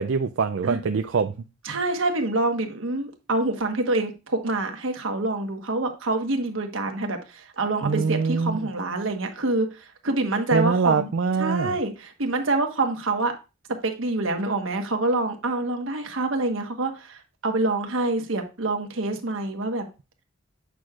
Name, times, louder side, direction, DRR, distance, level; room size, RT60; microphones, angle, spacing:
voice 1, 0.0-1.3 1.7-1.8 7.8-8.6 10.5-11.8, right 5 dB, 65° right, 0.4 m, -24 dB
voice 2, 1.6-11.1 11.4-13.4 13.8-19.9, right 2 dB, 85° right, 1.3 m, -26 dB
8.3 x 6.1 x 2.4 m
head